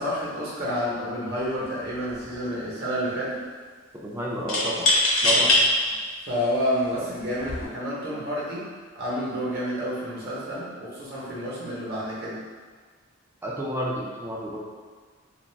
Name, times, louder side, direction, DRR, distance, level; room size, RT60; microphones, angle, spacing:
voice 1, 0.0-3.4 5.3-5.7 6.2-8.6 8.9-12.4, equal, 55° right, -7 dB, 0.9 m, -29 dB
sound 1, 1.4-1.6 1.9-2.6 4.5-5.6 6.3-6.4 7.3-7.6, left 2 dB, 70° left, 0.7 m, -22 dB
voice 2, 3.9-4.9 5.2-5.5 6.9-7.0 13.4-14.7, right 1 dB, 10° right, -4 dB, 0.3 m, -30 dB
2.4 x 2.2 x 3.2 m, 1.5 s
head